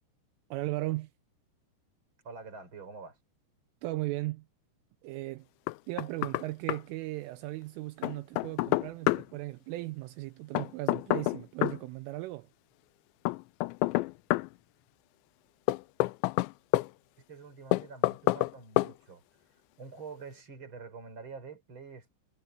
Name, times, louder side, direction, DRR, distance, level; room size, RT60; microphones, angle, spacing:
voice 1, 0.5-1.1 3.8-4.4 5.0-5.5 5.9-12.5, right 19 dB, 80° right, 3.3 m, -36 dB
voice 2, 2.2-3.2 17.2-19.2 19.8-22.1, right 4 dB, 25° right, 5.2 m, -46 dB
Knock, 5.7-6.4 6.7-6.8 8.0-9.2 10.6-11.8 13.3-14.5 15.7-16.9 17.7-18.5 18.8-18.9, left 19 dB, 90° left, 2.6 m, -28 dB
omnidirectional pair, 5.8 m